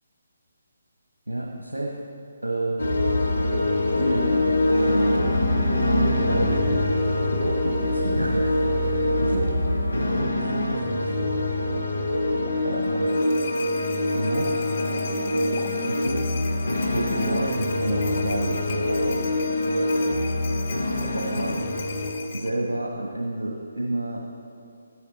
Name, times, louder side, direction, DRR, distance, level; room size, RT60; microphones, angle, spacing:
voice 1, 1.3-2.0 2.4-2.8 3.9-9.5 9.9-11.6 12.6-13.2 14.1-14.5 15.9-16.2 16.7-19.1 21.1-21.6 22.3-24.2, right 1 dB, 80° right, 0 dB, 1.3 m, -30 dB
sound 1, 2.8-22.1, left 1 dB, 70° left, 1.3 m, -24 dB
sound 2, 12.3-13.5 15.4-16.0 17.8-18.9 20.9-22.6, left 4 dB, 25° left, 1.2 m, -43 dB
sound 3, 12.8-22.5, left 6 dB, 45° left, 0.8 m, -40 dB
13.0 x 11.0 x 4.1 m, 2.4 s
figure-of-eight pair, 145°, 0 cm